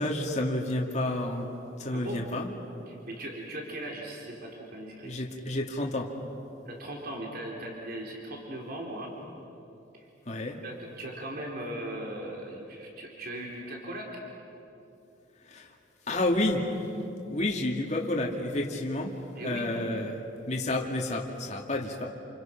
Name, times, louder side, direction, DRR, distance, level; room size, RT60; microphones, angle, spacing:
voice 1, 0.0-1.5 1.8-2.5 5.0-6.1 10.3-10.6 15.5-15.7 16.1-16.7 17.3-19.1 19.4-22.1, left 1 dB, 35° left, 0 dB, 2.3 m, -30 dB
voice 2, 1.9-2.2 2.9-5.1 6.7-9.1 9.9-10.1 10.6-14.2 19.3-19.7, right 1 dB, 50° right, -1 dB, 3.8 m, -38 dB
29.0 x 29.0 x 6.0 m, 2.8 s
head